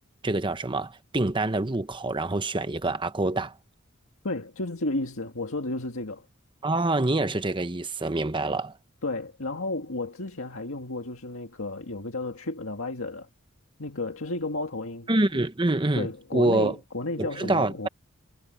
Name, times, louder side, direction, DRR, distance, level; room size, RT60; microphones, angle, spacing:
voice 1, 0.2-3.5 6.6-8.8 15.1-16.8 17.2-17.9, right 2 dB, 25° right, 1.0 m, -26 dB
voice 2, 4.2-6.3 9.0-13.3 13.8-15.1 16.0-17.9, left 2 dB, 70° left, 2.0 m, -32 dB
head